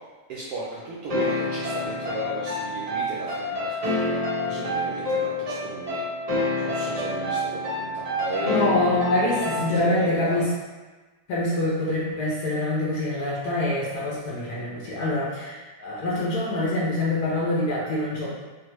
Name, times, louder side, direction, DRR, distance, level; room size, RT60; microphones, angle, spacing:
voice 1, 0.3-6.1 6.6-8.7 9.7-10.4, right 2 dB, 75° right, -6 dB, 1.1 m, -35 dB
sound 1, 1.1-10.0, left 2 dB, 45° right, 0.5 m, -27 dB
voice 2, 8.4-10.5 11.3-18.3, left 2 dB, 65° left, -6 dB, 1.2 m, -25 dB
3.3 x 2.1 x 3.0 m, 1.3 s
omnidirectional pair, 1.9 m